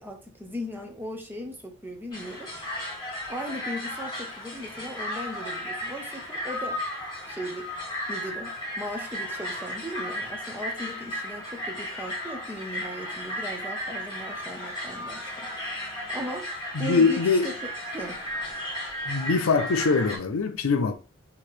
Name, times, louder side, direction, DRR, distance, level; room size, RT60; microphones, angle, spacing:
voice 1, 0.0-2.5 3.3-6.8 7.3-15.5 15.8-18.2, equal, 10° right, 0.8 m, -38 dB
sound 1, 2.1-20.2, left 1 dB, 20° left, 1.9 m, -35 dB
voice 2, 16.7-17.5 19.1-20.9, left 4 dB, 80° left, 0.6 m, -23 dB
4.7 x 2.9 x 3.2 m
head